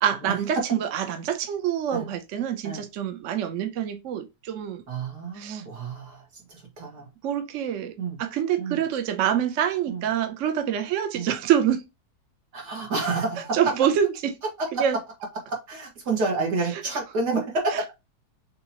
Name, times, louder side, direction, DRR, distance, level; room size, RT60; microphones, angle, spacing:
voice 1, 0.0-4.8 5.3-5.6 7.2-11.8 13.5-14.4 14.7-15.0 17.7-17.8, right 9 dB, 60° right, 0.9 m, -26 dB
voice 2, 4.9-7.1 8.0-8.2 8.6-8.8 9.9-10.0 11.1-11.3 12.5-13.7 15.5-17.7, right 3 dB, 80° right, 2.3 m, -29 dB
6.2 x 2.9 x 2.8 m
omnidirectional pair, 1.8 m